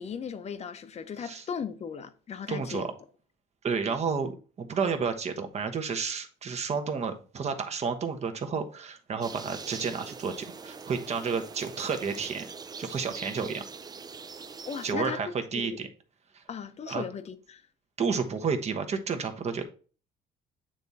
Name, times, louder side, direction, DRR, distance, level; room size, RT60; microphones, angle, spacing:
voice 1, 0.0-2.9 14.6-15.2 15.5-15.8 16.5-17.6, left 7 dB, 40° left, 0.9 m, -37 dB
voice 2, 2.5-2.9 3.6-4.3 4.6-12.5 12.8-13.6 14.8-15.9 16.3-16.4 16.9-17.0 18.0-19.6, right 5 dB, 40° right, 1.2 m, -31 dB
sound 1, 9.2-14.9, right 5 dB, 25° right, 0.5 m, -43 dB
8.9 x 3.6 x 4.1 m
cardioid pair, 110°, 17 cm